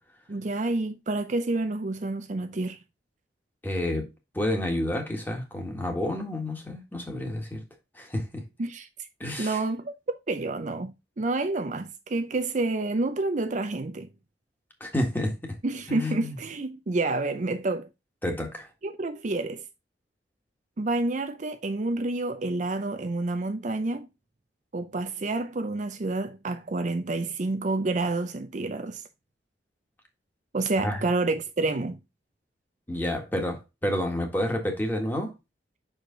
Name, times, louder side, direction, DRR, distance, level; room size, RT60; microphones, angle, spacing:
voice 1, 0.3-2.8 8.6-9.1 9.4-9.9 10.3-14.1 15.6-17.9 18.8-19.6 20.8-24.1 24.7-29.0 30.5-32.0, right 2 dB, 45° right, 0.5 m, -29 dB
voice 2, 3.6-4.1 4.3-7.6 7.9-8.4 9.2-9.6 14.8-15.6 15.9-16.3 18.2-18.7 30.8-31.0 32.9-35.3, left 1 dB, 10° left, 1.6 m, -29 dB
6.3 x 4.9 x 3.8 m
head